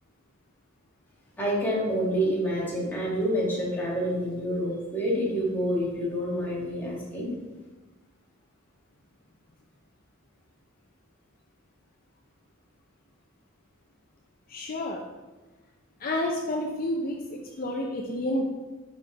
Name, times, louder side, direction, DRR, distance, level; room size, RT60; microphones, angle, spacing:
voice 1, 1.4-7.4, equal, 10° left, -7 dB, 1.8 m, -28 dB
voice 2, 14.5-15.0 16.0-18.5, left 1 dB, 45° left, 0 dB, 0.6 m, -30 dB
5.6 x 5.0 x 4.1 m, 1.2 s
head